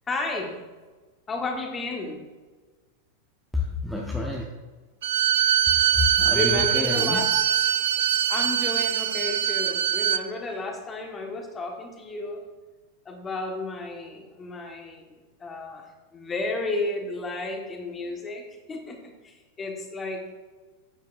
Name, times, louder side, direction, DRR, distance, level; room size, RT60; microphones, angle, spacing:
voice 1, 0.1-0.6 1.3-2.2 6.3-7.3 8.3-12.4 13.0-15.8 16.1-20.4, left 2 dB, 20° left, 2 dB, 1.6 m, -32 dB
voice 2, 3.5-4.4 5.7-7.2, left 3 dB, ahead, -2 dB, 1.0 m, -29 dB
Bowed string instrument, 5.0-10.2, right 10 dB, 60° right, 0.4 m, -23 dB
sound 1, 6.5-6.6 6.8-10.0, right 6 dB, 75° right, 1.9 m, -38 dB
11.0 x 9.1 x 2.6 m, 1.3 s
figure-of-eight pair, 90°, 0 cm